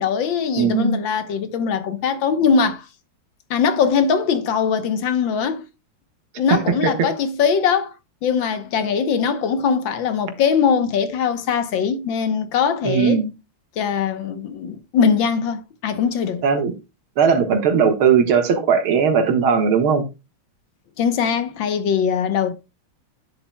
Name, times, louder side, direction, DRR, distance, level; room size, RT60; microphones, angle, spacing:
voice 1, 0.0-2.9 3.5-5.7 6.4-7.9 8.2-13.2 13.8-16.4 21.0-22.5, left 6 dB, 70° left, 1.7 m, -21 dB
voice 2, 0.6-1.0 6.5-7.1 12.8-13.3 16.4-16.7 17.2-20.0, right 6 dB, 80° right, 2.3 m, -18 dB
9.8 x 7.3 x 2.2 m
omnidirectional pair, 2.3 m